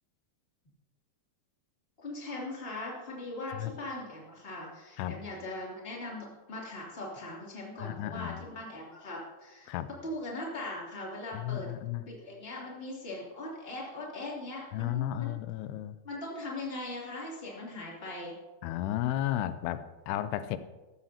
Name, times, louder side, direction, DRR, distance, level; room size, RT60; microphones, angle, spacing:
voice 1, 2.0-9.7 10.0-11.7 12.1-15.3 16.0-18.3, left 2 dB, 15° left, -4 dB, 2.6 m, -40 dB
voice 2, 7.8-8.4 9.7-9.9 11.3-12.0 14.7-16.0 18.6-20.6, left 13 dB, 90° left, 12 dB, 2.6 m, -33 dB
14.0 x 13.5 x 2.9 m, 1.2 s
omnidirectional pair, 4.5 m